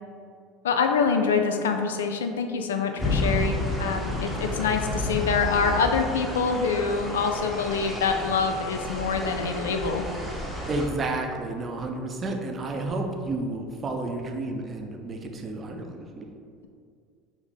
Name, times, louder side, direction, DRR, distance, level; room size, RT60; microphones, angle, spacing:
voice 1, 0.6-10.0, left 5 dB, 85° left, 6 dB, 0.4 m, -25 dB
sound 1, 3.0-10.9, left 1 dB, 5° left, 1.1 m, -31 dB
voice 2, 10.7-16.3, right 2 dB, 30° right, 3 dB, 0.6 m, -31 dB
5.8 x 2.0 x 4.0 m, 2.2 s
hypercardioid pair, 75°, 0 cm